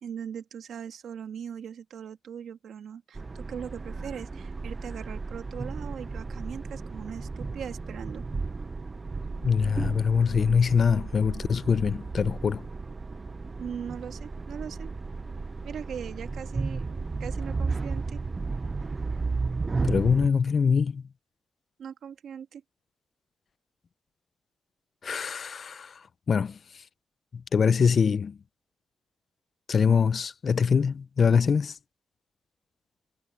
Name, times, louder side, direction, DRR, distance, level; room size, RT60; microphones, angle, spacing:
voice 1, 0.0-8.2 13.6-14.9 15.6-18.2 21.8-22.6, right 8 dB, 75° right, 1.6 m, -40 dB
sound 1, 3.2-20.3, right 4 dB, 25° right, 0.4 m, -34 dB
voice 2, 9.4-12.6 19.8-21.0 25.0-26.0 26.3-26.6 27.3-28.4 29.7-31.8, left 6 dB, 45° left, 0.4 m, -24 dB
wide cardioid pair, 155°, 0 cm